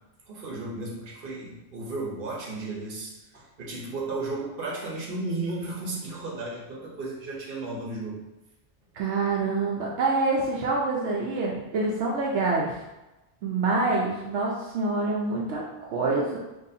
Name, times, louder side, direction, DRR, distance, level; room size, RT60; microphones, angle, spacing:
voice 1, 0.3-8.2, right 2 dB, 55° right, -3 dB, 1.0 m, -34 dB
voice 2, 8.9-12.8 13.4-16.4, right 3 dB, 75° right, -3 dB, 0.9 m, -26 dB
4.0 x 2.9 x 2.7 m, 1.0 s
omnidirectional pair, 1.2 m